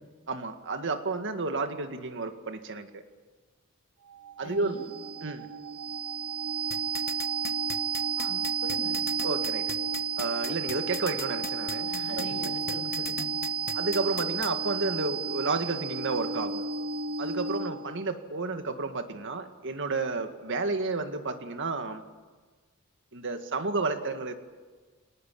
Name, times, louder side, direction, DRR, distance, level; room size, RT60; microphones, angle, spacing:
voice 1, 0.3-3.0 4.4-4.8 5.2-5.5 9.2-9.6 10.2-12.5 13.7-16.6 17.2-22.0 23.1-24.3, right 3 dB, 60° right, 7 dB, 2.0 m, -31 dB
sound 1, 4.1-18.0, right 6 dB, 80° right, 1.2 m, -32 dB
voice 2, 4.4-4.9 8.2-9.0 11.9-13.3, equal, 75° left, 4 dB, 3.7 m, -41 dB
sound 2, 6.7-14.5, left 9 dB, 45° left, 1.0 m, -37 dB
25.0 x 19.0 x 8.7 m, 1.4 s
head